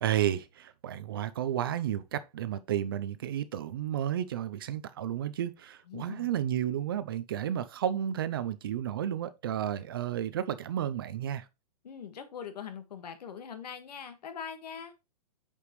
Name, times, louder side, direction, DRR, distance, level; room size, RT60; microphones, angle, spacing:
voice 1, 0.0-11.5, right 10 dB, 35° right, 0.4 m, -32 dB
voice 2, 5.9-6.3 11.8-14.9, left 7 dB, 75° left, 1.7 m, -42 dB
8.3 x 5.1 x 3.1 m
hypercardioid pair, 175°, 21 cm